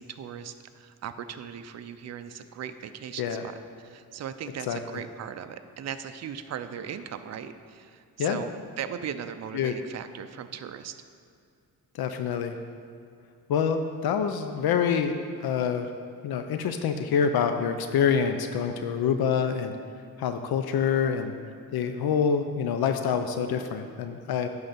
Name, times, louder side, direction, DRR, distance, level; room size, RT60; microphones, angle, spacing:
voice 1, 0.0-8.5 8.8-11.0, right 8 dB, 45° right, 9 dB, 0.5 m, -38 dB
voice 2, 11.9-12.6 13.5-15.9 16.2-19.7 20.2-21.3 21.7-24.5, left 7 dB, 80° left, 7 dB, 0.5 m, -26 dB
10.5 x 3.9 x 5.8 m, 2.3 s
cardioid pair, 110°, 37 cm